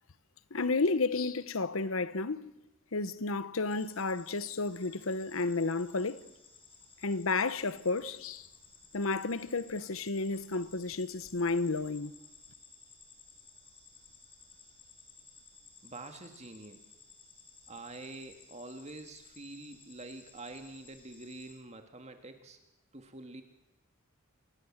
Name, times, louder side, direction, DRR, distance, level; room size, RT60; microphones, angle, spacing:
voice 1, 0.5-2.5 2.9-6.2 7.0-8.5 8.9-12.1, left 3 dB, 90° left, 1.0 m, -32 dB
sound 1, 3.6-21.5, left 5 dB, 25° left, 6.0 m, -57 dB
voice 2, 15.8-16.8 17.7-22.6 22.9-23.4, right 2 dB, 35° right, 1.8 m, -46 dB
28.5 x 19.5 x 7.4 m
head